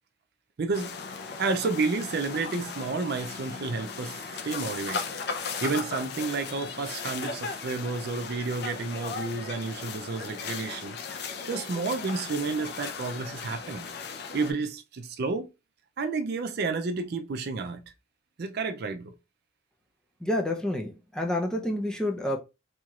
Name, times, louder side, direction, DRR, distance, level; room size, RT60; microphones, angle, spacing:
voice 1, 0.6-1.0 1.4-4.2 4.4-5.0 5.6-13.9 14.3-15.5 16.0-17.8 18.4-19.1, right 4 dB, 55° right, 0.4 m, -31 dB
sound 1, 0.7-14.5, left 5 dB, 55° left, 0.5 m, -37 dB
voice 2, 20.2-22.4, left 1 dB, 5° left, 0.6 m, -29 dB
4.4 x 2.9 x 2.4 m
head